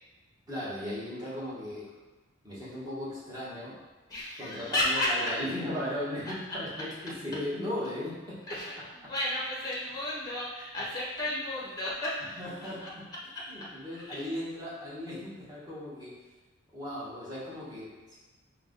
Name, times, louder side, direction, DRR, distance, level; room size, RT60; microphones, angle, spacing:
voice 1, 0.5-1.9 2.4-3.7 4.4-8.1 9.0-9.1 11.3-11.4 12.4-13.0 13.5-16.2 16.7-18.2, left 1 dB, 20° right, -9 dB, 1.2 m, -37 dB
voice 2, 4.1-5.3 8.5-12.9 13.3-14.3, left 1 dB, 20° left, -5 dB, 0.8 m, -33 dB
4.5 x 2.3 x 3.8 m, 1.2 s
head